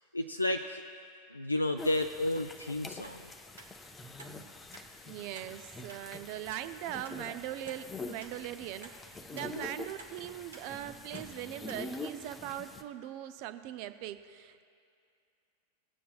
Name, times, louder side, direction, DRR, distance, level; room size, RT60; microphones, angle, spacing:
voice 1, 0.1-0.8 1.3-3.3 9.6-9.7, left 1 dB, 85° left, 5 dB, 0.3 m, -32 dB
sound 1, 1.8-12.8, left 2 dB, 15° left, 0.6 m, -45 dB
sound 2, 3.0-3.2 3.6-3.7 4.2-4.4 4.7-4.9 5.3-5.5 5.9-6.0 6.5-6.6 7.0-7.2 7.7-7.8 8.2-8.4 8.8-9.0 9.4-9.5 10.0-10.1 10.5-10.7 11.1-11.3 11.7-11.8 12.3-12.4, right 4 dB, 70° right, 1.1 m, -51 dB
voice 2, 5.0-14.6, right 12 dB, 45° right, 11 dB, 0.5 m, -40 dB
18.5 x 8.4 x 2.3 m, 2.4 s
figure-of-eight pair, 90°, 0 cm